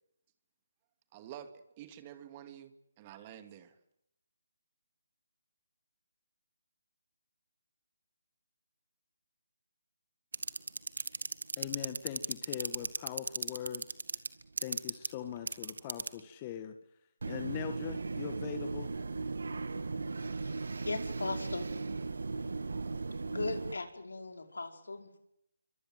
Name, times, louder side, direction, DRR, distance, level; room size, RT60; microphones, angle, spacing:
voice 1, 1.1-3.8, right 10 dB, 25° right, 9 dB, 2.4 m, -49 dB
sound 1, 10.3-16.2 17.2-23.7, right 3 dB, 70° right, 2.0 m, -36 dB
voice 2, 11.6-14.0 14.6-16.7 17.3-18.9, left 10 dB, 25° left, 8 dB, 1.7 m, -41 dB
voice 3, 20.4-21.7 22.2-22.6 23.3-25.2, left 3 dB, 80° left, 5 dB, 5.2 m, -39 dB
28.5 x 24.0 x 8.0 m, 0.78 s
figure-of-eight pair, 155°, 0 cm